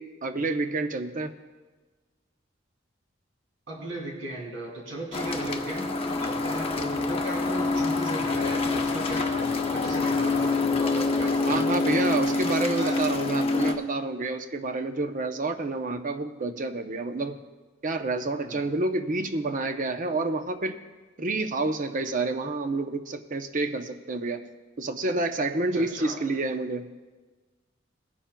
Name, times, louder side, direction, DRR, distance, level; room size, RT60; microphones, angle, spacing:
voice 1, 0.0-1.3 11.5-17.4 17.8-20.8 21.2-24.4 24.8-26.9, right 2 dB, 45° right, 7 dB, 0.7 m, -29 dB
voice 2, 3.7-13.0 18.4-18.6 25.7-26.2, right 1 dB, 85° right, -1 dB, 3.0 m, -36 dB
sound 1, 5.1-13.7, left 3 dB, 30° left, 0.9 m, -26 dB
19.0 x 10.0 x 2.3 m, 1.3 s
head